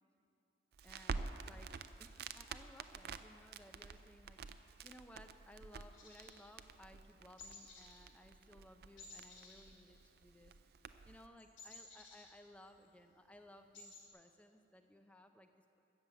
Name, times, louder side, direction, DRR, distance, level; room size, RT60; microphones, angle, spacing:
Crackle, 0.7-11.3, right 4 dB, 55° right, 0.4 m, -49 dB
voice 1, 0.8-1.7 2.0-4.4 4.8-10.5 11.0-15.8, left 1 dB, 5° left, 6 dB, 0.5 m, -60 dB
sound 1, 5.9-7.1 7.4-8.0 8.3-8.5 9.0-10.5 10.8-12.9 13.2-13.3 13.5-14.1, left 3 dB, 80° left, 2.6 m, -56 dB
13.5 x 7.0 x 8.2 m, 2.7 s
head